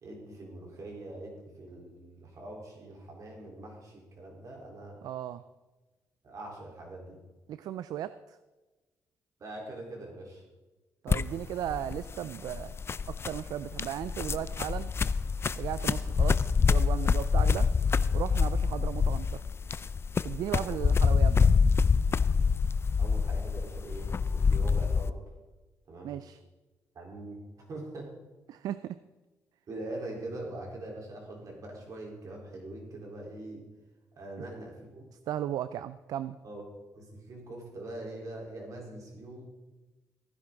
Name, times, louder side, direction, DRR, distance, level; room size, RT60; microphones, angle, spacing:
voice 1, 0.0-5.0 6.2-7.2 9.4-10.4 20.5-20.8 23.0-25.2 25.9-26.2 26.9-27.4 27.7-28.1 29.7-33.6 34.2-35.0 36.4-36.6 36.9-39.5, right 2 dB, 60° right, -1 dB, 4.0 m, -43 dB
voice 2, 5.0-5.4 7.5-8.4 11.0-12.8 13.1-14.9 15.6-17.7 18.1-19.4 20.2-21.5 26.0-26.4 28.5-29.0 35.3-36.4, right 11 dB, 75° right, 14 dB, 0.4 m, -36 dB
sound 1, 11.1-25.1, left 5 dB, 40° left, 0.4 m, -26 dB
15.0 x 10.5 x 3.9 m, 1.2 s
supercardioid pair, 65°, 7 cm